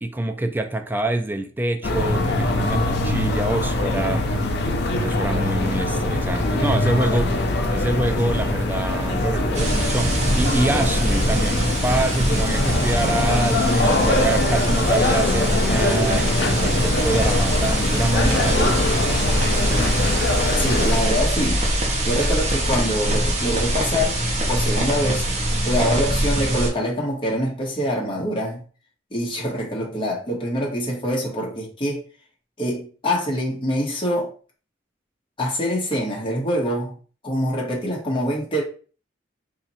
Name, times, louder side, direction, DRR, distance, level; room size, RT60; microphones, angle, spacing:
voice 1, 0.0-4.3 5.0-19.0, right 2 dB, 10° right, 0.3 m, -26 dB
sound 1, 1.8-21.0, left 2 dB, 65° left, 0.6 m, -23 dB
sound 2, 9.5-26.7, right 1 dB, 40° right, 0.8 m, -23 dB
voice 2, 20.6-21.7 22.0-24.2 24.5-25.2 25.6-28.6 29.1-32.0 32.6-34.3 35.4-36.9 37.2-38.6, equal, 30° left, 1.1 m, -25 dB
2.8 x 2.4 x 4.1 m
head